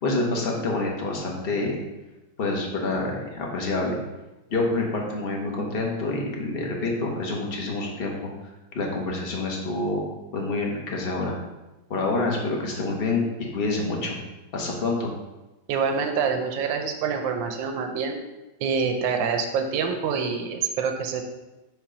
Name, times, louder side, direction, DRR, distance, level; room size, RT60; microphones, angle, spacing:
voice 1, 0.0-1.8 2.4-4.0 4.5-8.1 8.7-10.0 10.3-11.3 11.9-13.2 13.5-14.2 14.5-15.1, left 2 dB, 40° left, -1 dB, 0.9 m, -27 dB
voice 2, 15.7-18.2 18.6-21.2, right 6 dB, 85° right, 5 dB, 1.3 m, -26 dB
6.5 x 2.9 x 5.0 m, 1.0 s
omnidirectional pair, 2.1 m